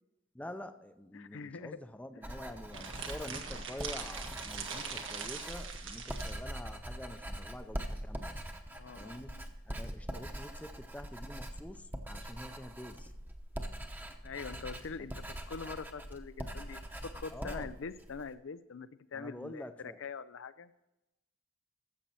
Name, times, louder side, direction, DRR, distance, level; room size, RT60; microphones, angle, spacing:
voice 1, 0.3-8.4 9.0-9.4 9.6-13.1 17.3-17.8 19.1-20.0, left 1 dB, 5° left, 9 dB, 0.5 m, -47 dB
voice 2, 1.1-1.8 2.2-2.4 8.7-9.5 14.2-19.7 20.0-20.7, left 5 dB, 85° left, 14 dB, 0.5 m, -44 dB
Writing, 2.2-18.3, equal, 10° right, 0.9 m, -43 dB
sound 1, 2.7-6.4, right 5 dB, 90° right, 1.6 m, -42 dB
13.5 x 7.5 x 4.3 m, 0.95 s
head